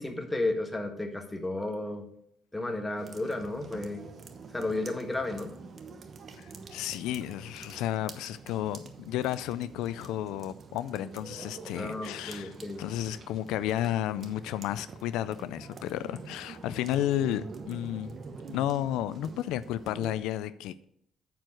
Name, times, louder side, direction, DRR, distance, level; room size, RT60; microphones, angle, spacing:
voice 1, 0.0-2.0 2.5-4.0 4.5-5.5 11.7-12.8, left 2 dB, 10° left, 1.3 m, -33 dB
sound 1, 3.0-20.2, right 4 dB, 40° right, 0.9 m, -46 dB
voice 2, 6.4-18.1 18.5-20.8, left 12 dB, 90° left, 0.3 m, -32 dB
9.2 x 4.6 x 6.2 m
cardioid pair, 115°, 0 cm